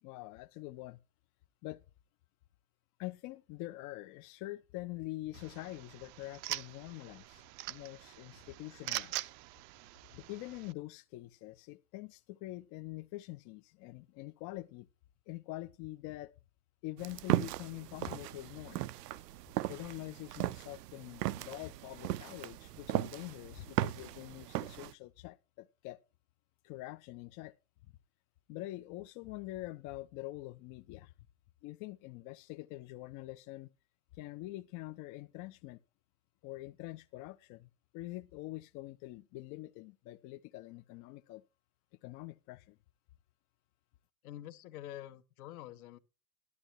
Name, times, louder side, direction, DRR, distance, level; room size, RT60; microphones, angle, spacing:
voice 1, 0.0-1.0 1.6-1.8 3.0-9.3 10.1-14.9 15.3-16.3 16.8-18.8 19.7-26.0 26.6-27.5 28.5-31.1 31.6-33.7 34.1-35.8 36.4-41.4 42.0-42.8, left 18 dB, 40° left, 0.7 m, -45 dB
sound 1, 5.3-10.7, right 18 dB, 40° right, 0.6 m, -43 dB
sound 2, 17.0-24.9, right 15 dB, 80° right, 0.7 m, -37 dB
voice 2, 44.2-46.0, left 13 dB, 65° left, 1.7 m, -47 dB
14.0 x 11.5 x 3.0 m
hypercardioid pair, 115°, 47 cm